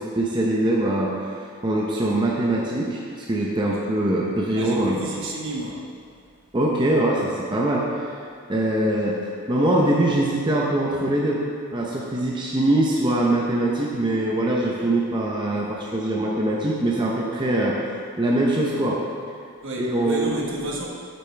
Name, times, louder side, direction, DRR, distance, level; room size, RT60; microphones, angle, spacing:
voice 1, 0.0-5.0 6.5-8.1 8.5-9.2 9.5-11.4 11.7-17.8 18.2-19.0 19.8-20.3, right 1 dB, 20° right, -3 dB, 0.7 m, -23 dB
voice 2, 3.6-3.9 4.5-5.8 19.6-20.9, right 1 dB, 60° right, -2 dB, 1.3 m, -31 dB
8.7 x 8.5 x 3.3 m, 2.2 s
head